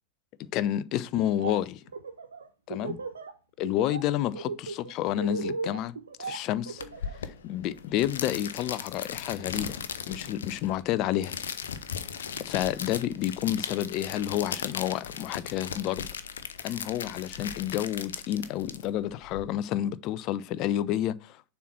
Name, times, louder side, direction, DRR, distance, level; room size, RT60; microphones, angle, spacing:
voice 1, 0.5-1.8 2.7-3.0 3.6-5.9 6.2-6.8 7.1-9.8 10.1-11.3 12.4-16.1 16.6-21.4, left 12 dB, 40° left, 0.4 m, -30 dB
Laughter, 1.1-1.6 1.9-3.3 3.6-4.0 4.3-7.2, right 4 dB, 70° right, 1.0 m, -36 dB
sound 1, 6.8-19.4, left 7 dB, 65° left, 0.7 m, -37 dB
7.0 x 4.3 x 6.0 m
figure-of-eight pair, 90°, 0 cm